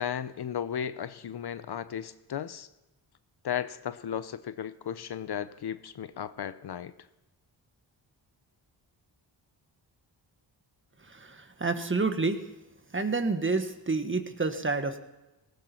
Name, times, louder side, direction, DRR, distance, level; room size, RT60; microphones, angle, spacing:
voice 1, 0.0-2.7 3.4-6.9, left 9 dB, 55° left, 14 dB, 0.8 m, -35 dB
voice 2, 11.1-12.4 12.9-15.0, right 3 dB, 25° right, 8 dB, 1.6 m, -29 dB
18.5 x 15.5 x 4.5 m, 1.0 s
cardioid pair, 70°, 46 cm